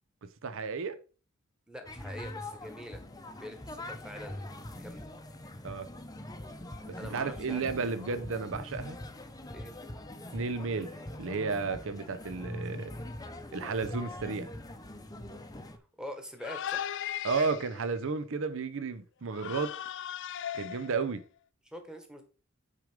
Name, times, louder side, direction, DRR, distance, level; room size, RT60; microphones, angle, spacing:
voice 1, 0.4-1.0 5.6-5.9 6.9-9.0 10.3-12.9 13.5-14.5 17.2-19.7 20.5-21.2, right 4 dB, 65° right, 0.7 m, -33 dB
voice 2, 1.7-3.0 3.4-5.1 7.0-7.7 9.5-9.7 16.0-16.9 21.7-22.2, equal, 5° right, 1.3 m, -44 dB
sound 1, 1.9-15.8, left 1 dB, 15° left, 0.7 m, -43 dB
sound 2, 16.4-17.9 19.3-21.2, left 10 dB, 55° left, 0.4 m, -37 dB
6.4 x 5.1 x 5.1 m
head